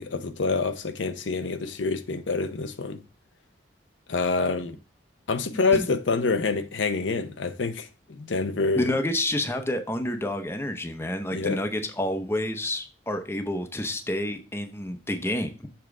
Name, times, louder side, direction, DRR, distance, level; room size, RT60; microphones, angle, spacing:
voice 1, 0.0-3.0 4.1-4.8 5.3-8.9 11.3-11.6, left 4 dB, 90° left, 0.7 m, -27 dB
voice 2, 5.5-5.8 8.8-15.5, left 1 dB, 15° left, 0.6 m, -29 dB
7.0 x 3.7 x 4.7 m
head